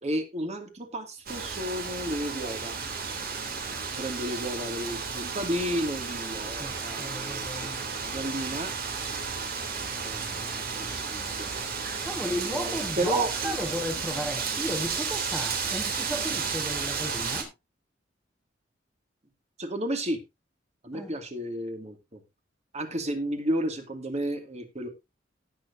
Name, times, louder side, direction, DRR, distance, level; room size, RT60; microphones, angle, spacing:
voice 1, 0.0-2.8 4.0-8.7 10.0-10.4 10.7-11.7 12.5-13.5 19.6-20.2 20.8-22.2 22.7-24.9, right 1 dB, 35° right, 2.2 m, -32 dB
Wind, 1.3-17.4, right 5 dB, 55° right, 3.0 m, -33 dB
voice 2, 6.6-7.9 12.0-17.5 20.9-21.1, equal, 5° right, 1.4 m, -34 dB
18.0 x 6.8 x 2.6 m
head